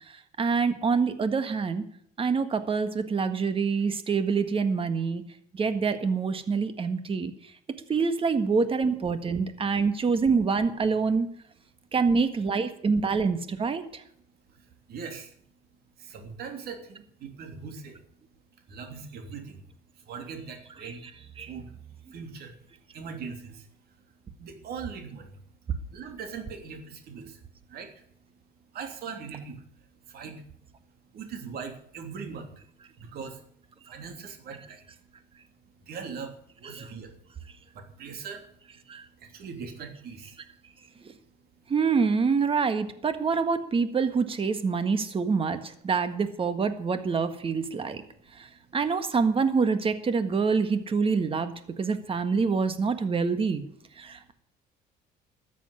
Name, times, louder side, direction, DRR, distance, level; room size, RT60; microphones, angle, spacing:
voice 1, 0.4-1.8 2.2-5.2 5.5-7.3 7.9-11.3 11.9-13.8 20.8-20.9 21.4-21.5 36.7-36.9 38.9-39.0 41.7-45.6 45.8-48.0 48.7-51.5 51.8-53.6 54.0-54.3, right 5 dB, 30° right, 10 dB, 1.6 m, -26 dB
voice 2, 14.5-15.3 16.0-18.0 18.7-19.6 20.0-21.1 21.5-21.7 22.1-22.6 22.9-23.7 24.4-25.3 25.9-27.4 27.7-27.9 28.7-29.7 30.1-30.4 31.1-32.5 33.0-33.4 33.9-34.8 35.9-36.3 36.6-37.2 37.7-38.4 39.2-40.4, right 5 dB, 65° right, 5 dB, 3.1 m, -40 dB
13.5 x 7.4 x 9.9 m, 0.68 s
cardioid pair, 110°, 17 cm